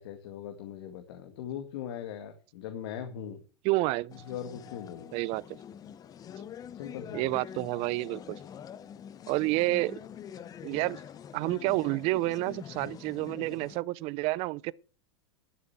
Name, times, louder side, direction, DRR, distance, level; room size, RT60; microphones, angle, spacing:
voice 1, 0.0-3.4 4.3-5.1 6.7-7.3, left 9 dB, 70° left, 1.9 m, -40 dB
voice 2, 3.6-4.1 5.1-5.6 7.1-8.4 9.3-10.0 10.6-11.0 11.3-14.7, right 20 dB, 45° right, 0.5 m, -29 dB
sound 1, 4.1-13.8, left 9 dB, 25° left, 0.8 m, -45 dB
12.0 x 6.7 x 7.2 m
hypercardioid pair, 120°, 14 cm